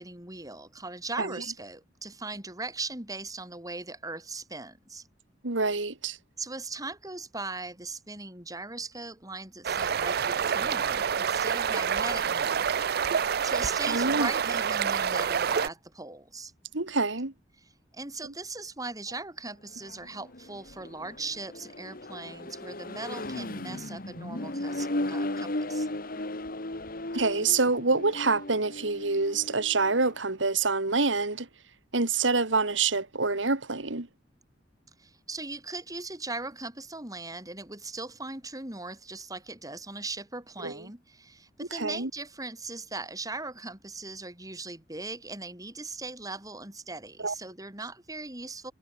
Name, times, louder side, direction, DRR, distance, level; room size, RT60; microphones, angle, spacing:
voice 1, 0.0-5.1 6.4-12.7 13.1-16.5 17.9-25.9 35.0-48.7, right 3 dB, 20° right, 7.5 m, -39 dB
voice 2, 5.4-6.2 13.9-14.3 16.7-17.3 18.2-18.3 27.1-31.5 31.9-34.1 40.6-40.8 41.6-42.1 47.2-47.3, right 4 dB, 90° right, 2.3 m, -27 dB
sound 1, 9.6-15.7, right 7 dB, 55° right, 0.5 m, -27 dB
Accelerating revving vroom, 19.7-30.2, left 1 dB, 50° left, 2.4 m, -36 dB
head